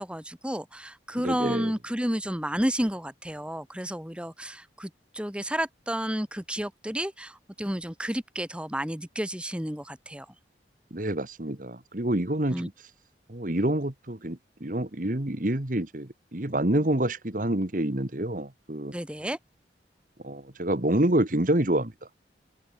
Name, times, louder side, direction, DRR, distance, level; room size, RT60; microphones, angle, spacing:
voice 1, 0.0-10.3 12.5-12.7 18.9-19.4, equal, 5° right, 1.9 m, -31 dB
voice 2, 1.2-1.7 10.9-12.7 13.3-18.9 20.2-21.9, right 1 dB, 45° right, 1.6 m, -27 dB
head